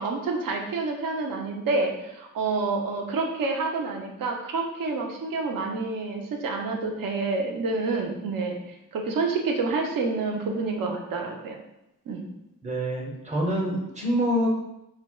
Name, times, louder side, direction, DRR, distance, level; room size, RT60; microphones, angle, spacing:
voice 1, 0.0-8.6 8.9-11.6 12.1-12.2, right 3 dB, 75° right, 2 dB, 0.6 m, -28 dB
voice 2, 12.6-14.5, equal, 20° right, -1 dB, 0.7 m, -26 dB
4.1 x 2.2 x 2.3 m, 0.87 s
cardioid pair, 95°, 34 cm